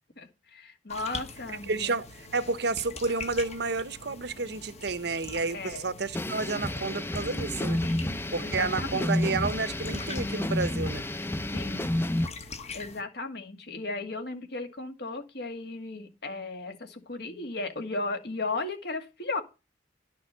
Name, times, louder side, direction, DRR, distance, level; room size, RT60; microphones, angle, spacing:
voice 1, 0.2-1.9 5.5-5.9 7.8-9.1 11.5-11.9 12.7-19.4, left 3 dB, 65° left, 2.2 m, -36 dB
sound 1, 0.9-13.0, left 4 dB, 40° left, 1.3 m, -44 dB
voice 2, 1.7-2.1 2.3-7.8 8.3-11.0, right 4 dB, 65° right, 1.0 m, -30 dB
sound 2, 6.1-12.3, left 1 dB, 15° left, 0.6 m, -30 dB
12.0 x 6.3 x 5.6 m
head